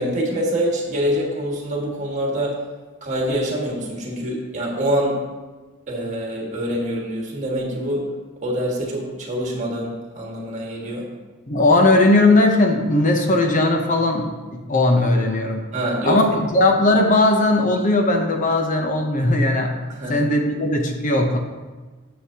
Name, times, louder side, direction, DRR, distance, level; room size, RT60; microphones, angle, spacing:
voice 1, 0.0-2.6 3.0-5.2 5.9-8.1 8.4-11.1 15.7-16.2 19.9-20.2, equal, 35° right, -2 dB, 1.8 m, -25 dB
voice 2, 11.5-15.6 16.0-19.7 20.1-21.4, left 2 dB, 40° left, 3 dB, 0.8 m, -18 dB
9.7 x 7.7 x 2.9 m, 1.3 s
head